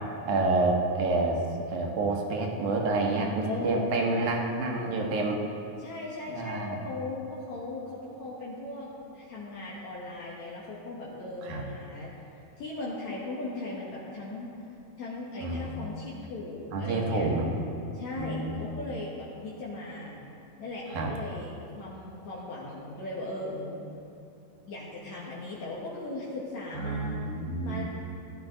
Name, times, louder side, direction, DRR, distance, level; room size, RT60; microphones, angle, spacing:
voice 1, 0.3-5.4 6.3-6.8 11.4-11.6 15.4-15.9 16.7-17.5 18.2-18.6 20.9-21.1 26.7-27.8, right 2 dB, 70° right, 1 dB, 2.7 m, -28 dB
voice 2, 3.4-4.6 5.8-12.1 12.6-14.5 15.0-17.3 17.9-20.2 20.6-23.9 24.6-27.2 27.6-27.8, left 2 dB, 65° left, -6 dB, 2.6 m, -38 dB
16.5 x 11.5 x 3.9 m, 2.7 s
omnidirectional pair, 3.8 m